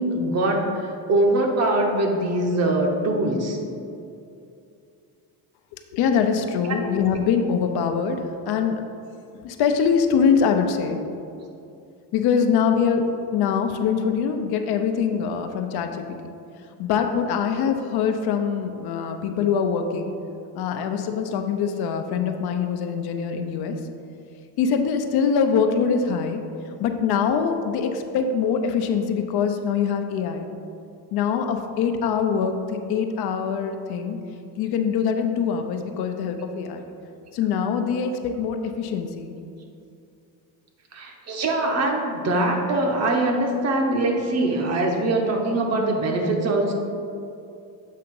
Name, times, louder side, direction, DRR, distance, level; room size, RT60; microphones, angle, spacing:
voice 1, 0.0-3.6 6.7-6.8 40.9-46.7, right 2 dB, 40° right, 2 dB, 0.8 m, -23 dB
voice 2, 5.9-8.8 9.4-11.0 12.1-13.1 13.3-16.3 16.8-20.1 20.5-23.8 24.6-26.4 26.8-30.5 31.1-34.2 34.6-36.8 37.3-39.3, left 6 dB, 70° left, 6 dB, 0.6 m, -23 dB
7.5 x 2.9 x 5.2 m, 2.5 s
cardioid pair, 150°, 40 cm